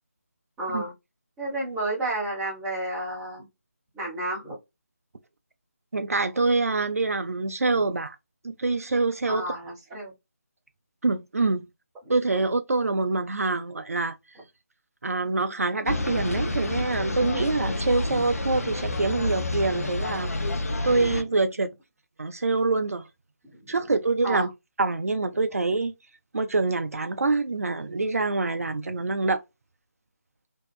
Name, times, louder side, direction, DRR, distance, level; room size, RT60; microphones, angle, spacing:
voice 1, 0.6-0.9 1.4-3.4 3.9-4.6 7.8-7.9 9.2-10.1 12.3-12.4 24.2-24.5, right 2 dB, 5° right, 1.0 m, -31 dB
voice 2, 5.9-8.2 8.4-9.4 11.0-11.7 12.1-14.2 15.0-20.3 20.8-21.7 22.2-23.0 23.7-24.5 24.8-25.9 26.3-29.4, right 3 dB, 65° right, 0.4 m, -25 dB
sound 1, 15.9-21.2, left 2 dB, 65° left, 0.6 m, -29 dB
2.6 x 2.3 x 2.2 m
figure-of-eight pair, 155°, 9 cm